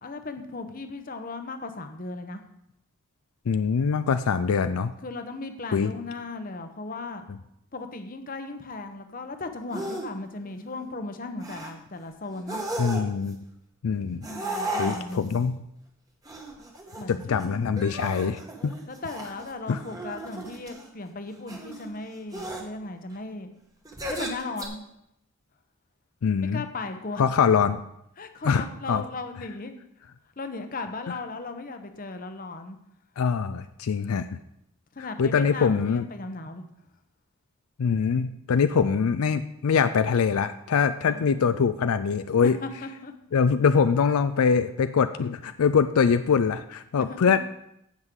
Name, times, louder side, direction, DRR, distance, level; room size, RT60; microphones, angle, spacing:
voice 1, 0.0-2.4 5.0-7.3 7.7-12.6 14.2-15.4 17.0-17.7 18.9-23.5 24.1-24.9 26.4-27.2 28.2-29.7 30.4-32.8 34.9-36.7 41.0-41.5 42.4-43.1 47.0-47.4, left 3 dB, 40° left, 7 dB, 0.8 m, -37 dB
voice 2, 3.5-4.9 5.7-5.9 12.8-13.4 13.8-14.2 14.8-15.6 17.1-18.7 19.7-19.8 26.2-26.6 27.2-27.8 28.4-29.0 33.2-34.4 35.2-36.0 37.8-42.6 43.3-47.4, left 6 dB, 80° left, 11 dB, 0.4 m, -23 dB
sound 1, 9.7-10.1 10.5-10.8 11.4-11.7 12.4-13.3 14.2-15.4 16.2-17.4 17.8-20.9 21.5-21.9 22.3-22.6 23.8-24.6, right 1 dB, 15° right, 1.2 m, -35 dB
15.5 x 6.3 x 3.7 m, 0.79 s
head